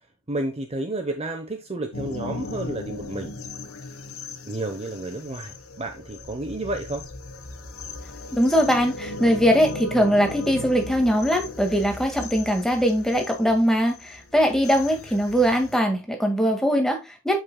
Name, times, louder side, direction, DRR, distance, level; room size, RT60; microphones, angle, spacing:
voice 1, 0.3-3.4 4.5-7.1, right 2 dB, 30° right, 0.9 m, -31 dB
Myst Forest Drone Atmo Dark Fantasy Cinematic, 1.9-15.8, left 2 dB, 80° left, 1.4 m, -37 dB
voice 2, 8.3-17.4, equal, ahead, 1.8 m, -21 dB
8.3 x 7.5 x 2.2 m
head